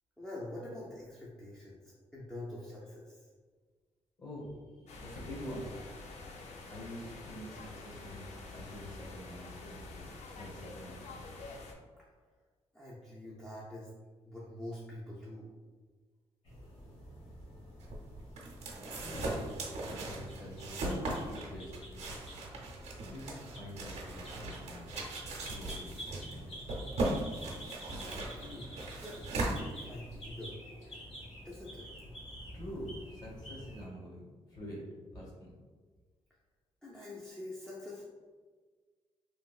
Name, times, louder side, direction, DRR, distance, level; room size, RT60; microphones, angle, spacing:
voice 1, 0.2-3.3 12.0-12.1 12.7-13.9 14.2-15.5 27.9-28.7 29.0-30.6 31.4-31.9 36.8-38.0, left 1 dB, 5° left, -6 dB, 0.4 m, -45 dB
voice 2, 4.2-5.7 6.7-8.2 8.5-10.0 10.3-11.0 19.0-19.5 19.8-22.2 23.1-25.2 25.5-26.0 26.3-26.5 32.5-34.2 34.5-34.8 35.1-35.5, equal, 35° left, -4 dB, 1.0 m, -46 dB
sound 1, 4.9-11.7, left 3 dB, 90° left, 0.4 m, -47 dB
sound 2, 16.5-33.9, equal, 70° left, 1.1 m, -49 dB
sound 3, 17.8-30.3, right 2 dB, 75° right, 0.7 m, -38 dB
3.1 x 2.7 x 2.3 m, 1.5 s
wide cardioid pair, 140°, 11 cm